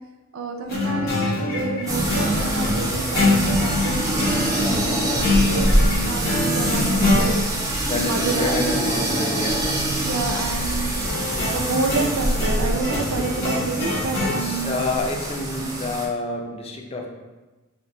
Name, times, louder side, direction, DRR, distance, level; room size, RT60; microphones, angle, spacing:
voice 1, 0.3-7.4 7.9-8.7 10.0-11.0 11.5-14.7, right 3 dB, 75° right, 4 dB, 0.5 m, -28 dB
sound 1, 0.7-7.3 11.0-14.4, left 2 dB, 50° left, 1.4 m, -24 dB
sound 2, 1.9-16.1, right 1 dB, 15° right, 0.6 m, -25 dB
voice 2, 7.9-9.9 14.2-17.1, left 2 dB, 30° left, 2 dB, 0.4 m, -28 dB
3.5 x 2.4 x 4.0 m, 1.2 s
head